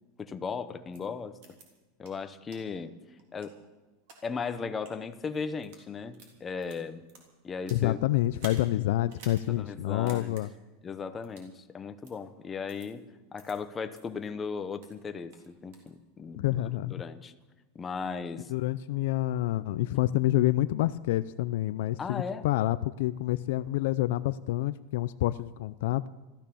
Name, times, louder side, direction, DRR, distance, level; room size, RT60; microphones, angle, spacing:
voice 1, 0.2-1.4 2.0-2.9 3.3-3.5 4.2-7.0 7.4-8.0 9.5-10.4 10.8-13.0 13.3-16.6 16.9-17.3 17.7-18.5 22.0-22.5, left 5 dB, 15° left, 9 dB, 0.7 m, -36 dB
sound 1, 0.9-1.0 1.4-1.6 2.0-2.1 2.5-2.6 3.2-4.2 4.7-4.9 5.5-5.8 6.1-7.9 8.3-8.6 9.1-9.4 9.7-9.8 10.1-10.4 11.2-11.5 12.0-12.1 12.7-12.9 13.4-13.5 13.9-14.0 14.5-15.0 15.3-15.9, right 4 dB, 50° right, 3.5 m, -50 dB
voice 2, 7.7-10.5 16.4-16.9 18.5-26.1, left 15 dB, 55° left, 14 dB, 0.4 m, -28 dB
15.5 x 13.5 x 6.9 m, 1.2 s
supercardioid pair, 180°, 0 cm